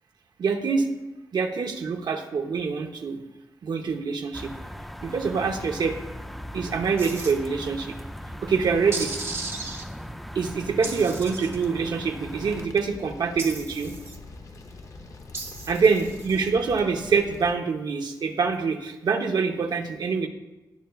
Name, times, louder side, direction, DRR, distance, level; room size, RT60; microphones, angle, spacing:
voice 1, 0.4-0.9 1.3-3.2 3.6-4.5 5.0-6.0 6.5-7.9 8.4-9.1 10.3-13.9 15.7-20.3, right 5 dB, 80° right, 4 dB, 0.9 m, -25 dB
sound 1, 4.3-12.7, equal, ahead, 0.3 m, -39 dB
sound 2, 7.0-7.3 8.9-9.8 10.8-11.7 13.4-14.2 15.3-16.5, right 3 dB, 40° right, 0.9 m, -36 dB
sound 3, 12.0-17.5, left 3 dB, 50° left, 0.7 m, -44 dB
18.0 x 6.8 x 2.4 m, 1.0 s
wide cardioid pair, 165°, 7 cm